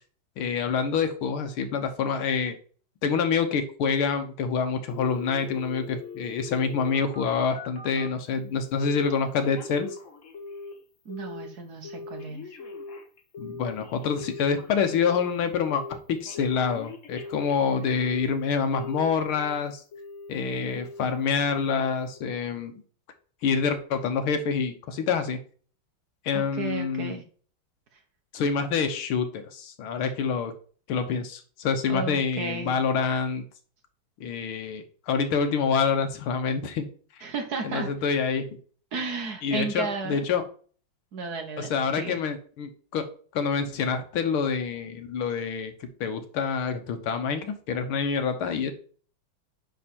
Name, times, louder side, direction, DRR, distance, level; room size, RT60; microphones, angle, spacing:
voice 1, 0.4-2.6 3.0-9.9 13.4-15.8 16.1-19.8 20.3-22.7 23.4-25.4 26.3-27.2 28.3-30.5 30.9-33.4 34.2-36.9 37.6-38.5 39.4-40.4 41.6-43.1 43.3-48.7, left 6 dB, 85° left, 7 dB, 1.9 m, -27 dB
Telephone, 4.9-8.2 8.8-9.2 9.4-10.8 11.1-11.5 11.8-15.2 15.6-16.0 16.3-18.3 18.7-19.6 19.9-20.3 20.7-21.1 21.4-21.8 22.2-22.3, left 3 dB, 40° left, 1.4 m, -41 dB
voice 2, 11.0-12.4 26.3-27.2 31.9-32.8 37.2-37.9 38.9-40.2 41.1-42.1, right 4 dB, 55° right, 4 dB, 1.6 m, -33 dB
9.9 x 3.5 x 4.3 m, 0.42 s
omnidirectional pair, 2.3 m